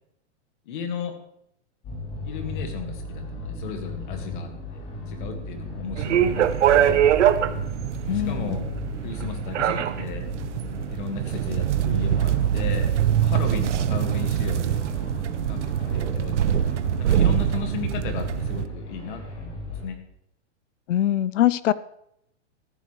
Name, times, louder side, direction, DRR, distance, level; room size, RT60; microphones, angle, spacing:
voice 1, 0.7-1.1 2.2-6.5 6.7-7.1 8.1-8.7 9.0-10.2 10.9-12.9 13.2-14.8 15.5-20.0, left 6 dB, 45° left, 5 dB, 2.0 m, -35 dB
sound 1, 1.8-19.8, left 2 dB, 20° left, 3.2 m, -36 dB
sound 2, 6.0-18.6, right 10 dB, 80° right, 0.9 m, -23 dB
voice 2, 8.1-8.6 20.9-21.7, left 12 dB, 85° left, 17 dB, 0.7 m, -22 dB
14.0 x 12.0 x 3.3 m, 0.77 s
hypercardioid pair, 170°, 36 cm